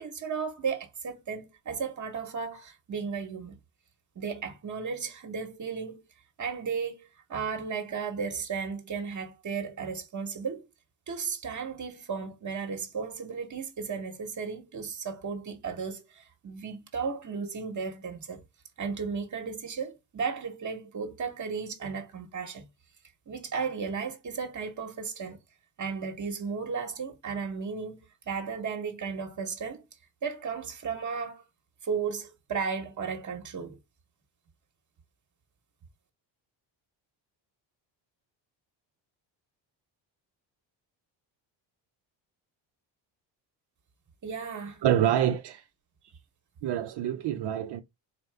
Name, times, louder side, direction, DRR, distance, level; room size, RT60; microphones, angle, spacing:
voice 1, 0.0-3.6 4.1-6.0 6.4-10.7 11.1-18.4 18.8-22.6 23.3-25.4 25.8-29.8 30.2-31.4 31.8-33.8 44.2-44.8, right 5 dB, 40° right, 1.1 m, -34 dB
voice 2, 44.8-45.6 46.6-47.8, right 10 dB, 60° right, 0.6 m, -26 dB
4.3 x 2.6 x 3.3 m
cardioid pair, 100°, 47 cm